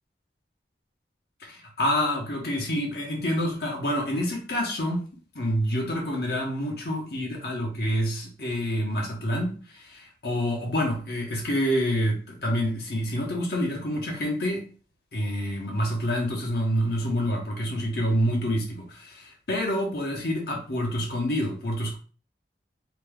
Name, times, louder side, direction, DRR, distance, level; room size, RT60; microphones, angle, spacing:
voice 1, 1.5-5.1 5.3-14.6 15.1-22.0, equal, 60° left, 0.9 m, -27 dB
2.8 x 2.3 x 3.4 m
head